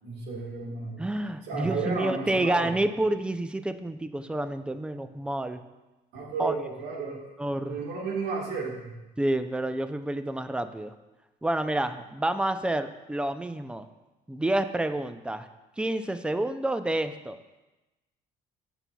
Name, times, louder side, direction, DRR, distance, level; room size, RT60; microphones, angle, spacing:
voice 1, 0.0-1.0 1.4-2.7 6.1-7.3 7.7-8.9, right 4 dB, 85° right, -1 dB, 1.5 m, -33 dB
voice 2, 1.0-5.6 6.4-6.5 7.4-7.8 9.2-10.9 11.4-13.9 14.3-15.5 15.8-17.4, right 1 dB, 5° right, 10 dB, 0.4 m, -29 dB
11.0 x 5.9 x 2.3 m, 1.1 s
cardioid pair, 110°, 17 cm